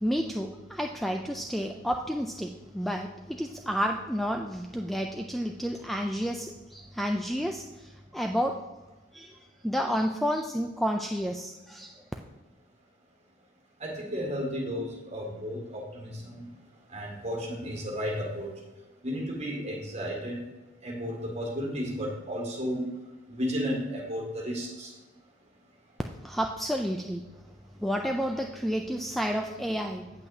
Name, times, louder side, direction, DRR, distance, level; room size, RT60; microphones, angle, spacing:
voice 1, 0.0-8.5 9.1-9.4 9.6-12.0 26.2-27.2 27.8-30.1, equal, ahead, 2 dB, 0.3 m, -30 dB
voice 2, 13.8-15.8 16.3-16.4 16.9-18.5 19.0-20.3 20.8-22.8 23.4-24.9, equal, 35° right, -2 dB, 2.1 m, -33 dB
8.3 x 8.2 x 2.7 m, 1.1 s
head